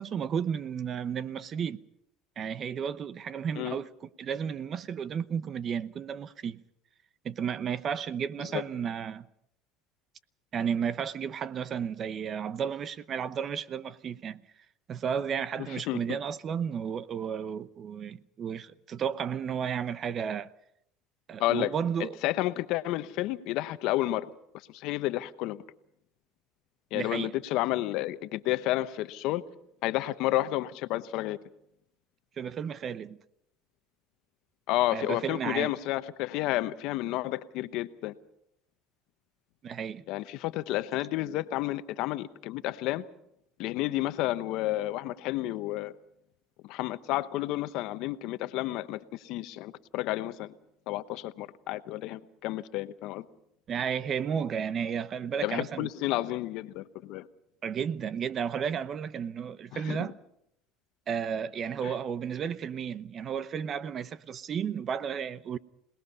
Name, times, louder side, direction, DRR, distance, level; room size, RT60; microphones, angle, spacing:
voice 1, 0.0-1.8 2.4-6.6 7.2-9.3 10.5-14.4 14.9-20.5 21.3-22.2 26.9-27.3 32.4-33.2 34.9-35.8 39.6-40.0 53.7-55.9 57.6-60.2 61.1-65.6, right 7 dB, 40° right, 0.8 m, -33 dB
voice 2, 15.9-16.2 21.4-21.7 22.0-24.3 24.7-25.6 26.9-29.4 29.8-31.4 34.7-38.2 40.1-43.0 43.6-45.9 46.6-50.5 50.9-53.2 55.4-57.3 59.7-60.1 61.8-61.9, left 16 dB, 65° left, 1.0 m, -31 dB
27.0 x 19.5 x 5.6 m
supercardioid pair, 105°, 0 cm